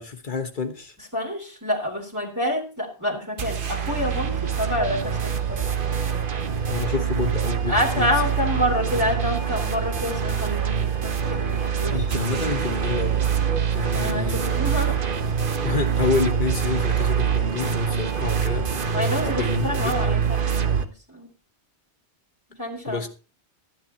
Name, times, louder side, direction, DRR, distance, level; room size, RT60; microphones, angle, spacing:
voice 1, 0.0-0.9 6.7-8.3 8.7-8.9 11.9-13.3 13.7-14.7 15.6-18.7 19.2-20.0 22.9-23.1, left 5 dB, 45° left, 5 dB, 1.4 m, -28 dB
voice 2, 1.1-5.6 7.7-12.4 13.9-15.0 18.9-21.3 22.6-23.1, left 1 dB, 15° right, -3 dB, 2.6 m, -28 dB
sound 1, 3.4-20.8, right 7 dB, 50° right, 1.2 m, -25 dB
13.0 x 10.0 x 4.1 m, 0.34 s
omnidirectional pair, 1.2 m